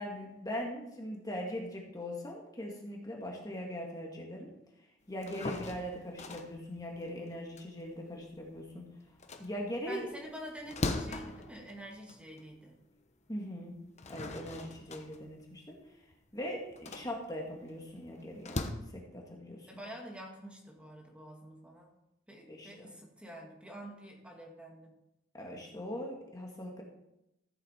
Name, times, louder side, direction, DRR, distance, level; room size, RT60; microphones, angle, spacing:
voice 1, 0.0-4.5 5.1-8.9 9.4-10.1 13.3-13.7 14.1-15.8 16.3-19.7 22.5-22.9 25.3-26.8, equal, 20° left, -1 dB, 1.7 m, -40 dB
sound 1, 5.1-8.7 9.1-12.6 13.0-13.1 13.7-18.7, left 2 dB, 35° left, 1.0 m, -41 dB
voice 2, 9.9-12.8 19.7-21.9 22.3-24.9, equal, 5° right, -1 dB, 1.9 m, -47 dB
14.5 x 8.0 x 4.3 m, 0.86 s
head